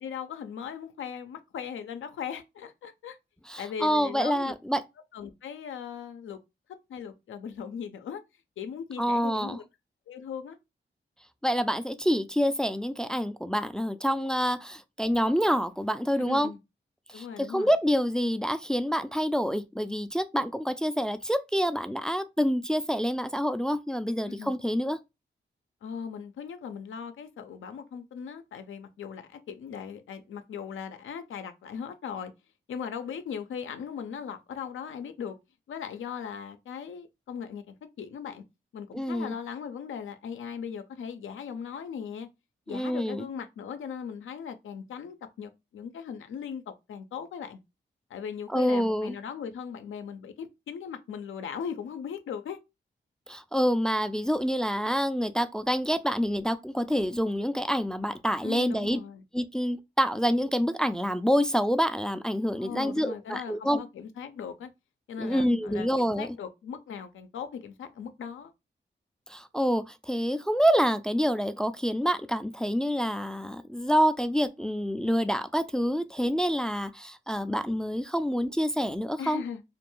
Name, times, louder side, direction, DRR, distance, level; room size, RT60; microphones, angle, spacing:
voice 1, 0.0-3.2 3.6-4.5 5.1-6.4 6.9-8.2 8.6-9.6 10.1-10.6 16.1-16.6 17.1-17.7 24.3-24.6 25.8-32.3 32.7-35.4 35.7-38.4 38.7-42.3 42.7-47.6 48.1-52.6 58.4-59.2 62.6-64.7 65.1-68.5 79.2-79.6, left 7 dB, 80° left, 0.5 m, -38 dB
voice 2, 3.5-4.8 9.0-9.6 11.4-16.5 17.1-25.0 38.9-39.3 42.7-43.3 48.5-49.2 53.3-59.0 59.3-63.8 65.2-66.3 69.3-79.4, equal, 5° left, 0.3 m, -27 dB
2.5 x 2.2 x 3.0 m
cardioid pair, 50°, 20 cm